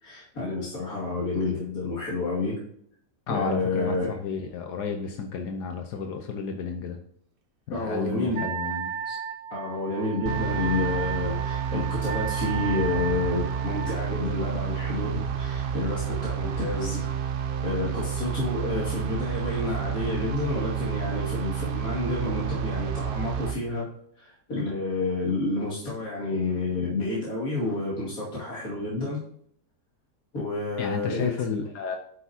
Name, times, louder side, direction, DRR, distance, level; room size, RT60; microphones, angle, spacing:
voice 1, 0.0-2.6 3.3-4.1 7.7-8.4 9.1-9.2 9.5-17.1 17.6-23.9 24.2-29.2 30.3-31.3, left 2 dB, 60° left, -6 dB, 2.9 m, -29 dB
voice 2, 3.3-7.0 7.7-8.9 30.8-32.0, left 5 dB, 80° left, 4 dB, 1.5 m, -31 dB
Wind instrument woodwind instrument, 8.3-14.0, right 8 dB, 45° right, 0.7 m, -34 dB
sound 1, 10.3-23.6, right 7 dB, 85° right, 0.4 m, -30 dB
9.1 x 6.8 x 2.8 m, 0.65 s
omnidirectional pair, 1.8 m